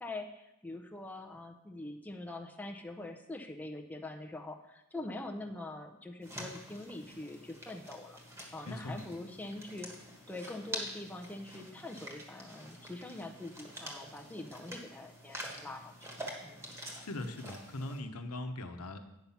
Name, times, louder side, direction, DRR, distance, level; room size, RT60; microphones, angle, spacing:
voice 1, 0.0-8.2 8.5-9.9 10.3-16.1 16.4-16.6, left 2 dB, 5° left, 2 dB, 0.6 m, -44 dB
sound 1, 6.2-18.0, right 1 dB, 15° right, 1.4 m, -47 dB
voice 2, 8.6-9.1 17.0-19.0, left 1 dB, 90° left, 6 dB, 0.9 m, -40 dB
9.4 x 5.6 x 5.8 m, 0.88 s
head